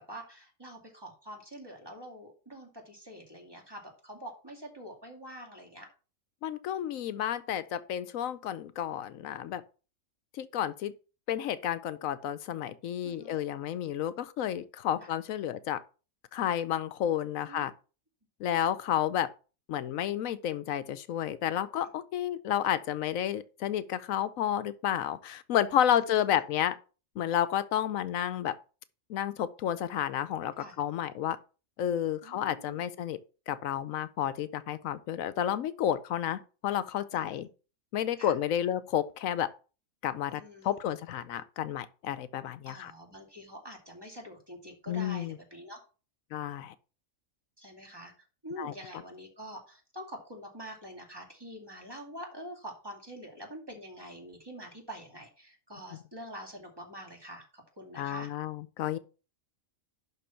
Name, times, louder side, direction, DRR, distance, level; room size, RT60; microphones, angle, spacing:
voice 1, 0.0-5.9 13.0-13.4 15.0-15.1 17.5-17.7 25.9-26.3 30.6-30.8 32.2-32.8 37.1-37.4 38.2-38.3 40.3-40.8 42.7-45.8 47.6-48.1 48.4-58.3, equal, 15° right, 2.4 m, -46 dB
voice 2, 6.4-9.6 10.3-10.9 11.3-15.8 16.3-17.7 18.4-19.3 19.7-26.8 27.2-28.5 29.1-31.4 31.8-33.2 33.5-37.5 37.9-39.5 40.0-42.9 44.9-45.4 46.3-46.7 48.6-48.7 58.0-59.0, left 10 dB, 80° left, 1.0 m, -31 dB
11.5 x 3.8 x 5.7 m
omnidirectional pair, 1.4 m